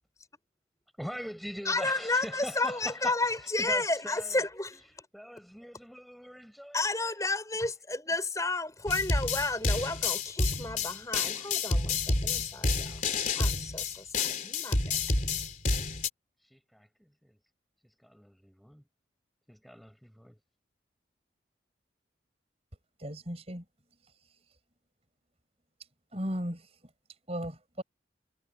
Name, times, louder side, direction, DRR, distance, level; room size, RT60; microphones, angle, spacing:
voice 1, 1.0-4.4 5.1-6.8 16.4-17.4 18.0-18.8 19.5-20.4, equal, ahead, 4.7 m, -43 dB
voice 2, 1.6-5.1 6.7-13.0 13.3-14.8, left 2 dB, 15° left, 5.8 m, -32 dB
sound 1, 8.9-16.1, left 3 dB, 45° left, 3.5 m, -29 dB
voice 3, 23.0-23.6 26.1-26.6 27.3-27.8, equal, 35° right, 5.6 m, -35 dB
head